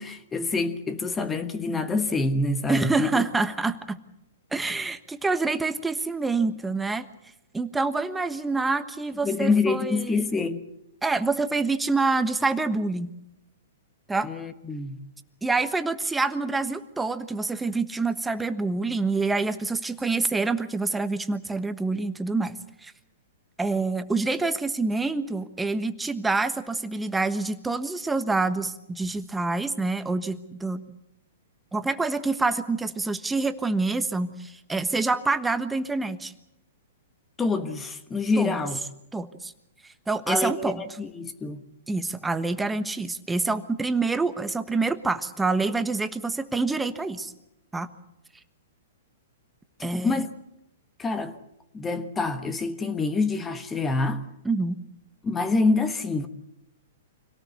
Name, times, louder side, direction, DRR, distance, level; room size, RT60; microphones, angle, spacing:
voice 1, 0.0-3.2 9.2-10.7 14.2-15.0 37.4-38.8 40.3-41.6 49.8-50.3 51.0-51.4 51.7-54.2 55.2-56.3, left 3 dB, 15° left, 1.3 m, -26 dB
voice 2, 2.7-4.0 4.5-7.1 7.5-10.3 11.0-13.1 14.1-14.3 15.4-22.9 23.6-30.8 31.7-36.3 38.4-38.6 39.1-39.5 40.1-40.8 41.9-47.3 47.7-47.9 49.8-50.2 54.4-54.8, right 3 dB, 10° right, 1.3 m, -27 dB
25.5 x 18.0 x 8.3 m
hypercardioid pair, 130°, 0 cm